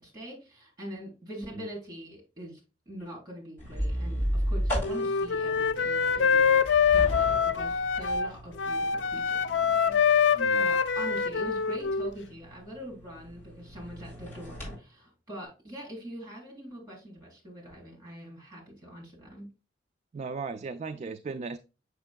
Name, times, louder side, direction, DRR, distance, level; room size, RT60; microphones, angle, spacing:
voice 1, 0.0-2.6 2.9-6.6 6.9-19.5, right 1 dB, 20° right, 3.9 m, -43 dB
sound 1, 3.6-14.8, equal, 10° left, 3.7 m, -36 dB
Wind instrument woodwind instrument, 4.8-8.3 8.6-12.1, left 6 dB, 70° left, 0.4 m, -25 dB
voice 2, 10.3-10.7 20.1-21.6, right 4 dB, 35° right, 0.3 m, -37 dB
6.8 x 6.4 x 2.2 m
head